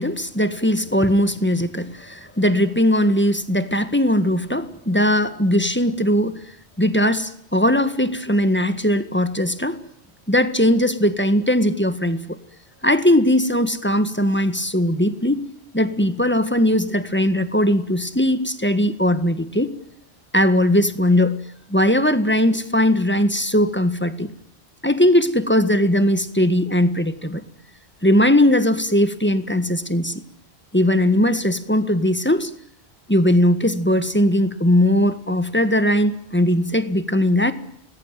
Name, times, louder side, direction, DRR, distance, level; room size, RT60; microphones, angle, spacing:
voice 1, 0.0-6.4 6.8-9.8 10.3-12.4 12.8-15.4 15.7-19.7 20.3-21.4 21.7-24.3 24.8-27.4 28.0-30.2 30.7-32.5 33.1-37.5, left 1 dB, 10° left, 10 dB, 1.8 m, -19 dB
29.5 x 21.0 x 9.2 m, 0.72 s
omnidirectional pair, 1.1 m